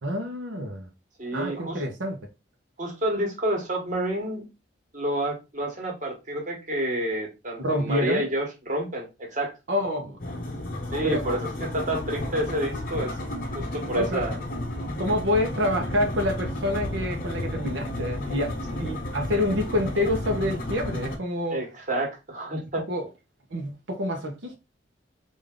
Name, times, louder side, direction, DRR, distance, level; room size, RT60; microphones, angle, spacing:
voice 1, 0.0-0.9 1.3-2.2 7.6-8.3 9.7-10.2 11.0-11.2 14.0-14.3 15.0-21.6 22.9-23.1 23.5-24.5, left 1 dB, 90° right, 0.8 m, -27 dB
voice 2, 1.2-1.8 2.8-4.4 4.9-9.5 10.9-13.1 13.5-14.4 21.5-22.8, right 1 dB, 45° right, 1.3 m, -29 dB
sound 1, 10.2-21.2, left 1 dB, 50° left, 0.9 m, -32 dB
3.5 x 2.6 x 3.6 m
head